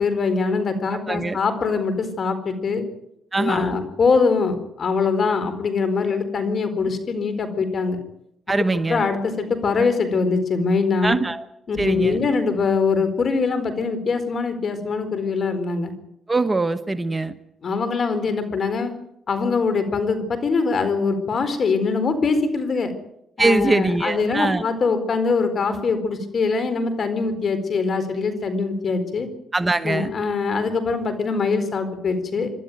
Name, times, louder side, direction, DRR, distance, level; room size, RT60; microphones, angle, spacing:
voice 1, 0.0-2.8 3.3-8.0 8.9-11.2 11.7-15.9 17.6-18.9 19.3-22.9 23.4-29.3 29.8-32.5, left 4 dB, 50° left, 10 dB, 4.3 m, -23 dB
voice 2, 1.1-1.4 3.3-3.8 8.5-9.0 11.0-11.4 11.8-12.2 16.3-17.3 23.4-24.6 29.5-30.1, right 2 dB, 20° right, 10 dB, 1.2 m, -22 dB
27.5 x 12.5 x 9.4 m, 0.79 s
cardioid pair, 90°, 0 cm